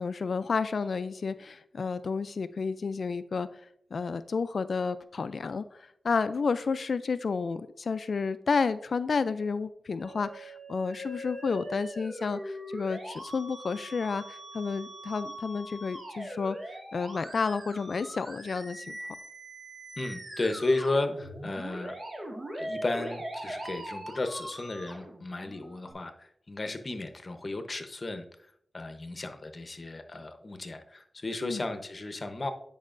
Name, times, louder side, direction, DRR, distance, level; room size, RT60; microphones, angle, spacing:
voice 1, 0.0-3.5 3.9-19.0 31.4-31.6, left 5 dB, 65° left, 13 dB, 0.3 m, -31 dB
Musical instrument, 10.0-25.9, right 1 dB, 45° right, 1.8 m, -41 dB
voice 2, 20.0-21.9 22.5-28.3 28.7-32.5, left 2 dB, 40° left, 7 dB, 0.8 m, -34 dB
9.3 x 5.4 x 2.5 m, 0.69 s
cardioid pair, 70°, 0 cm